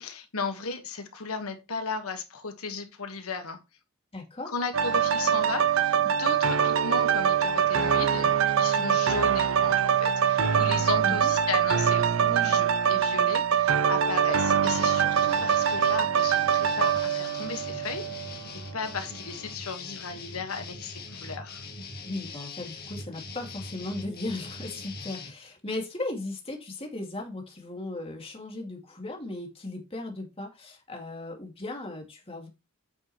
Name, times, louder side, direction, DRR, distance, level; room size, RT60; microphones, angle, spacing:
voice 1, 0.0-3.6 4.5-18.4 18.7-21.6, left 4 dB, 90° left, 1.5 m, -35 dB
voice 2, 4.1-4.5 11.0-11.3 22.0-32.5, left 2 dB, 25° left, 2.2 m, -37 dB
sound 1, 4.7-18.5 18.9-19.0, right 8 dB, 65° right, 0.6 m, -24 dB
sound 2, 14.6-25.3, left 3 dB, 45° left, 1.7 m, -42 dB
8.6 x 6.3 x 3.0 m
head